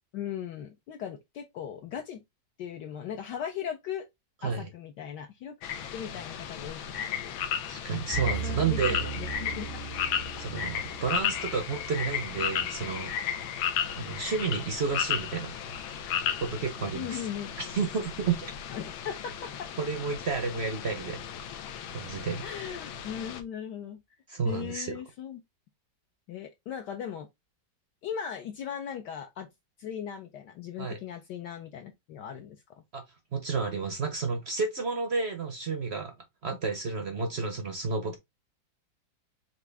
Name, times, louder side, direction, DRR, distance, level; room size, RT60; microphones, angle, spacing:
voice 1, 0.1-2.2 2.6-4.1 4.4-5.5 5.9-7.3 8.2-9.7 16.9-17.5 18.7-19.7 22.4-24.0 24.5-25.4 26.3-27.3 28.0-29.5 29.8-32.6, left 8 dB, 70° left, 1.1 m, -38 dB
sound 1, 5.6-23.4, left 8 dB, 90° left, 1.5 m, -34 dB
voice 2, 7.7-9.1 10.4-13.4 14.0-15.6 16.4-17.2 17.6-18.4 19.8-21.2 21.9-22.4 24.3-24.9 30.8-31.0 32.9-33.0 33.3-36.2 36.4-38.2, right 5 dB, 65° right, 0.6 m, -31 dB
sound 2, 8.1-13.2, right 8 dB, 50° left, 0.4 m, -39 dB
5.9 x 2.5 x 3.3 m
omnidirectional pair, 2.1 m